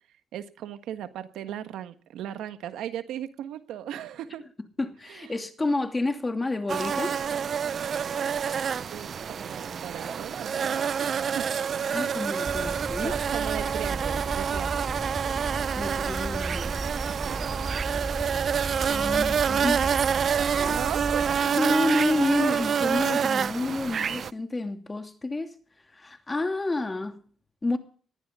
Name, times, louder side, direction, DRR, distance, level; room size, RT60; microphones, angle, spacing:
voice 1, 0.3-4.5 5.1-5.4 8.9-11.5 13.0-15.0 17.2-17.4 20.6-21.6, right 11 dB, 85° right, 1.5 m, -37 dB
voice 2, 4.8-7.1 11.9-13.2 15.8-16.8 18.9-20.0 20.5-20.9 21.5-25.5 25.9-27.2 27.6-27.8, left 2 dB, 20° left, 2.6 m, -29 dB
sound 1, 6.7-24.3, right 7 dB, 50° right, 0.6 m, -27 dB
Bird / Stream, 12.5-21.4, right 2 dB, 15° right, 3.8 m, -35 dB
21.0 x 14.5 x 3.7 m
cardioid pair, 90°, 0 cm